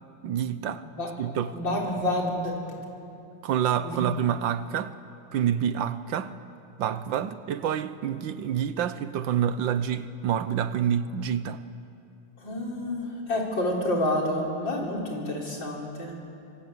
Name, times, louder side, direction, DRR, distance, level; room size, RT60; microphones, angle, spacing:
voice 1, 0.2-0.8 1.2-1.6 3.4-5.0 5.3-6.3 6.8-11.6, right 9 dB, 85° right, 1.6 m, -27 dB
voice 2, 1.5-2.5 3.8-4.0 12.4-16.1, left 1 dB, 75° left, 4.7 m, -28 dB
25.0 x 25.0 x 8.1 m
omnidirectional pair, 2.0 m